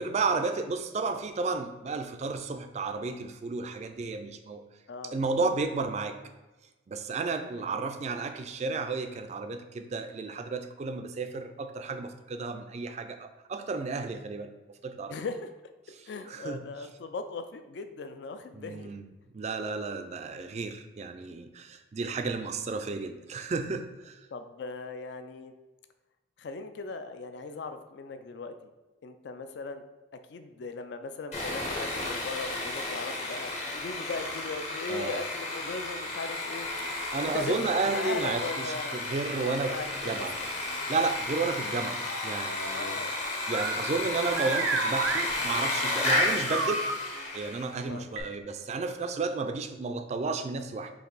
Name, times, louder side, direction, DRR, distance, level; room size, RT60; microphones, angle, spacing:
voice 1, 0.0-4.6 5.0-6.2 6.9-15.2 15.9-16.7 18.5-19.1 19.3-24.3 34.9-35.2 37.1-40.4 40.9-43.0 43.5-46.9 47.3-50.9, right 4 dB, 35° right, 8 dB, 0.3 m, -32 dB
voice 2, 4.9-5.2 7.7-7.9 15.1-15.5 16.1-18.9 24.3-25.5 26.4-28.5 29.0-29.8 30.3-36.7 37.2-37.6 37.8-39.0 39.7-40.5 42.7-43.1 47.8-48.0, left 4 dB, 55° left, 9 dB, 0.3 m, -38 dB
Sawing, 31.3-47.7, left 2 dB, 35° left, 0.8 m, -33 dB
sound 1, 42.1-42.7 43.5-46.9 48.2-48.3, right 4 dB, 85° right, 0.6 m, -31 dB
4.5 x 3.0 x 3.9 m, 1.1 s
head